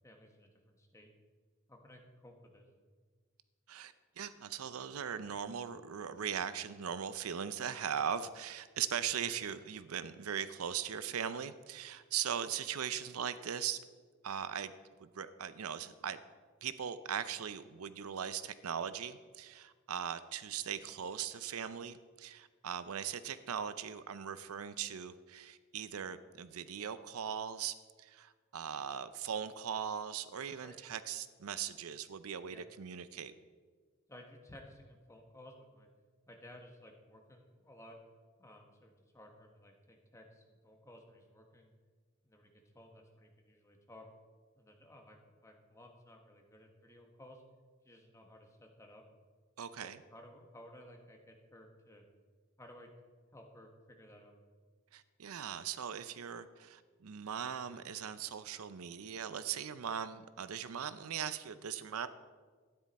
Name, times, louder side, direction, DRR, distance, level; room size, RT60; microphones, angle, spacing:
voice 1, 0.0-1.1 1.7-2.7 20.8-21.0 30.6-30.8 32.5-32.6 34.1-35.9 36.3-38.0 38.4-41.7 42.2-44.1 44.6-47.4 47.8-49.0 49.8-52.0 52.6-52.9 53.3-54.4, left 1 dB, 15° left, 2 dB, 1.2 m, -56 dB
voice 2, 3.7-13.8 14.2-14.7 15.0-16.2 16.6-33.3 49.6-50.0 54.9-62.1, right 8 dB, 85° right, 13 dB, 0.5 m, -39 dB
12.5 x 9.8 x 4.2 m, 1.5 s
head